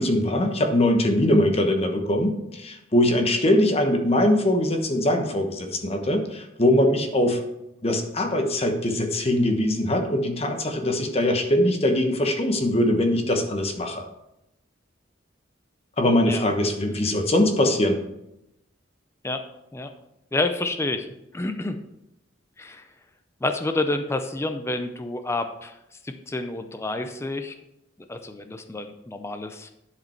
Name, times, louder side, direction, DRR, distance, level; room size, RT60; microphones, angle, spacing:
voice 1, 0.0-7.4 7.8-14.1 16.0-18.0, left 1 dB, 30° left, 4 dB, 1.1 m, -22 dB
voice 2, 20.3-21.1 21.3-21.8 22.6-22.8 23.4-25.8 26.0-27.5 28.1-29.7, left 2 dB, 15° left, 7 dB, 0.4 m, -29 dB
11.0 x 5.0 x 4.4 m, 0.87 s
head